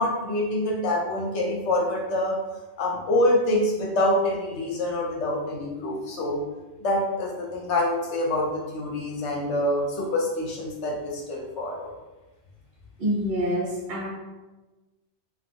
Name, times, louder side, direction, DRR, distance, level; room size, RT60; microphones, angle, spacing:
voice 1, 0.0-2.4 2.8-6.4 6.8-11.9, left 1 dB, 65° left, -1 dB, 1.0 m, -26 dB
voice 2, 13.0-14.1, equal, 60° right, -2 dB, 0.8 m, -26 dB
3.3 x 2.4 x 2.7 m, 1.1 s
omnidirectional pair, 1.3 m